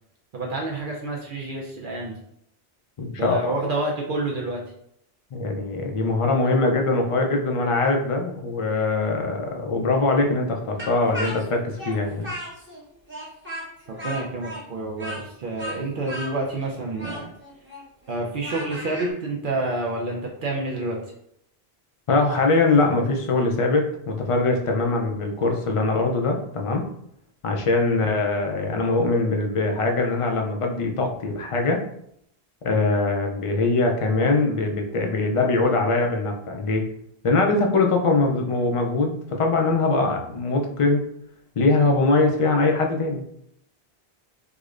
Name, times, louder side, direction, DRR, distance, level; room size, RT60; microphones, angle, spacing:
voice 1, 0.3-2.2 3.2-4.6 14.0-17.3 18.1-21.0 27.8-28.0, right 2 dB, 60° right, -1 dB, 0.7 m, -28 dB
voice 2, 3.0-3.5 5.3-12.3 22.1-26.8 27.4-31.8 32.6-36.8 37.2-41.0 41.6-43.2, left 3 dB, 50° left, 2 dB, 0.4 m, -22 dB
Speech, 10.8-12.8 13.1-19.1, equal, 15° right, 0.7 m, -35 dB
4.8 x 2.1 x 2.4 m, 0.72 s
omnidirectional pair, 1.1 m